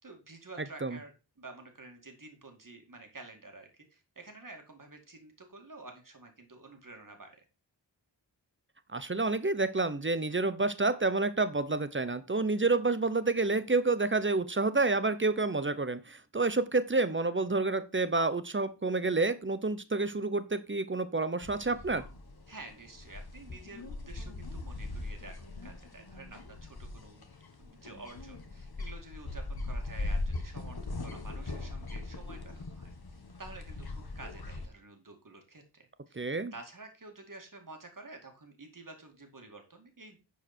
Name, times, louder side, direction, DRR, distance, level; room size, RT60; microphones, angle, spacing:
voice 1, 0.0-7.5 22.5-27.2 27.6-36.2 36.5-40.2, right 3 dB, 45° right, 3 dB, 2.5 m, -50 dB
voice 2, 8.9-22.0 36.1-36.5, right 3 dB, 25° right, 13 dB, 0.8 m, -29 dB
sound 1, 21.4-34.6, left 2 dB, 55° left, 1.7 m, -40 dB
11.0 x 4.8 x 4.4 m, 0.29 s
wide cardioid pair, 70°, 44 cm